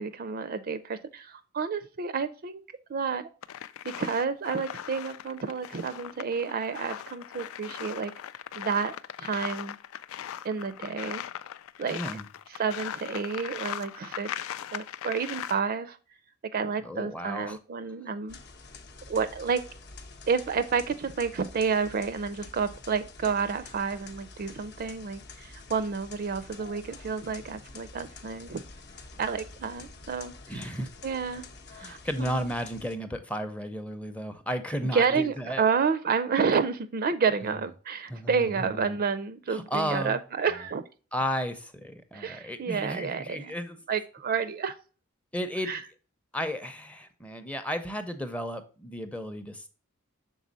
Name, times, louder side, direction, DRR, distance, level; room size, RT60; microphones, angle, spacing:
voice 1, 0.0-2.6 2.9-3.3 3.8-8.1 8.6-9.8 10.4-11.2 11.8-12.0 12.5-14.4 14.7-16.0 16.5-18.4 19.1-19.6 20.3-28.6 29.2-30.7 31.0-31.4 31.7-32.5 34.8-40.8 42.1-43.6 43.9-44.8 45.6-45.8, right 5 dB, 45° right, 12 dB, 0.4 m, -30 dB
sound 1, 3.4-15.6, left 10 dB, 70° left, 0.3 m, -39 dB
voice 2, 11.9-12.3 16.8-17.6 30.5-30.9 31.8-35.6 37.4-37.5 38.1-39.0 39.5-40.2 41.1-43.8 45.3-45.8 46.3-49.7, equal, 5° left, 8 dB, 0.5 m, -33 dB
sound 2, 18.3-33.0, left 3 dB, 55° left, 0.7 m, -47 dB
6.1 x 3.9 x 4.0 m, 0.36 s
head